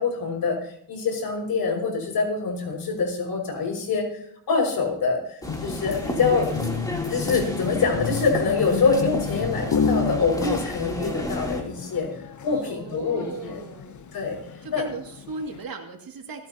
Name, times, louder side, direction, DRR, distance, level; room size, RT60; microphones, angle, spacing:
voice 1, 0.0-4.1 4.5-6.5 7.0-12.1 12.4-13.6 14.1-14.4 14.7-14.8, left 4 dB, 70° left, 0 dB, 6.0 m, -25 dB
sound 1, 5.4-15.6, left 6 dB, 50° left, 0.9 m, -31 dB
sound 2, 5.4-11.6, left 1 dB, 10° left, 3.1 m, -32 dB
voice 2, 12.5-14.4 14.6-16.5, right 4 dB, 65° right, 3 dB, 2.4 m, -38 dB
27.5 x 9.2 x 2.9 m, 0.66 s
cardioid pair, 70°, 38 cm